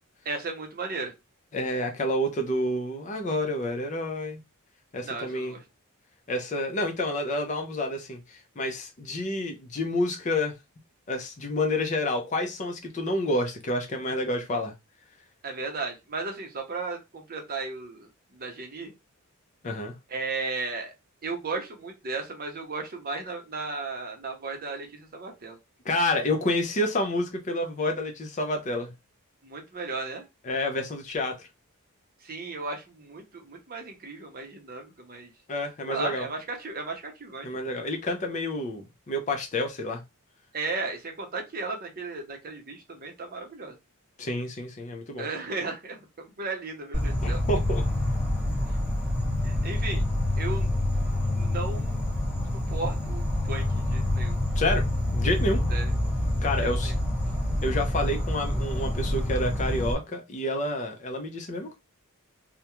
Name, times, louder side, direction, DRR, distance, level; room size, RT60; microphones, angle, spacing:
voice 1, 0.2-1.1 5.0-5.6 15.4-18.9 20.1-20.9 21.2-25.6 29.4-30.2 32.2-35.3 35.9-37.5 40.5-43.7 45.2-47.4 49.4-50.0 50.4-50.8 51.3-52.1 52.5-54.4 55.7-55.9 56.6-56.9, right 3 dB, 40° right, 0.6 m, -35 dB
voice 2, 1.5-4.4 4.9-5.6 6.3-10.5 11.1-14.7 19.6-19.9 25.8-28.9 30.4-31.4 35.5-36.3 37.4-40.0 44.2-45.2 47.2-47.8 54.6-54.8 55.1-55.6 56.4-56.9 57.6-61.8, left 1 dB, 35° left, 0.5 m, -29 dB
Insect, 46.9-59.9, left 1 dB, 5° right, 1.3 m, -27 dB
2.3 x 2.1 x 2.9 m
head